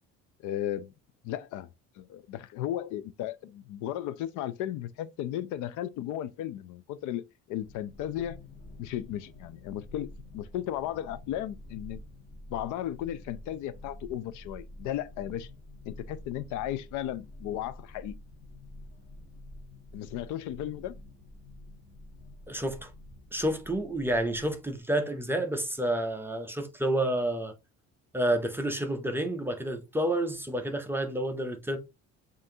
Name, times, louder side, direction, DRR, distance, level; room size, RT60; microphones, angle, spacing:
voice 1, 0.4-0.9 1.2-1.7 2.0-8.4 8.8-12.0 12.5-15.5 15.8-18.1 19.9-20.9, left 12 dB, 70° left, 0.4 m, -35 dB
sound 1, 7.6-24.8, left 1 dB, 30° left, 1.1 m, -48 dB
voice 2, 22.5-22.9 23.3-27.5 28.1-31.8, right 1 dB, 5° right, 0.4 m, -29 dB
7.5 x 2.6 x 2.7 m
cardioid pair, 160°, 31 cm